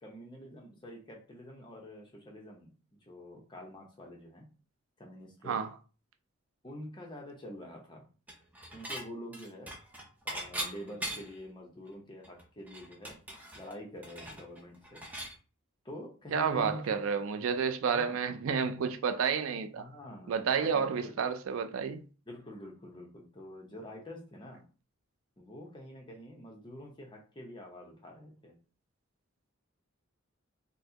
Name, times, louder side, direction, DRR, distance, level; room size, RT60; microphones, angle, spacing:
voice 1, 0.0-2.7 3.1-4.5 5.0-5.6 6.6-8.1 8.7-9.7 10.2-13.2 13.5-15.0 15.8-16.9 17.9-18.2 19.7-21.2 22.3-24.6 25.4-28.5, equal, 20° left, 0.7 m, -46 dB
Dishes pots and pans / Chink clink, 8.3-9.0 9.3-11.4 11.9-12.0 12.2-15.3, right 1 dB, 10° right, 0.5 m, -40 dB
voice 2, 16.3-19.8 20.3-22.0, right 6 dB, 80° right, 0.4 m, -30 dB
4.0 x 2.1 x 2.8 m
head